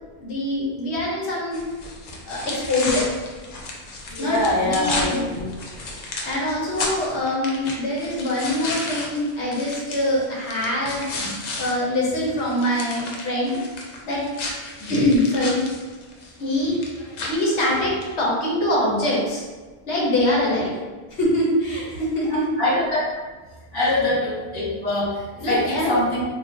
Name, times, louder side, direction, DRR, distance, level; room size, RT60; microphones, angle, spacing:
voice 1, 0.2-1.7 2.3-3.1 4.2-5.3 6.2-11.1 11.6-13.6 14.0-14.2 14.9-15.6 16.4-19.4 19.9-20.7 21.1-22.5 25.4-25.9, left 1 dB, 90° left, -4 dB, 1.1 m, -24 dB
sound 1, 1.5-11.7 12.1-18.1, left 2 dB, 55° left, 0.5 m, -33 dB
voice 2, 4.1-5.5 14.8-15.0 22.3-23.1 23.7-26.2, left 1 dB, 20° left, -9 dB, 1.0 m, -24 dB
2.4 x 2.2 x 3.7 m, 1.3 s
omnidirectional pair, 1.1 m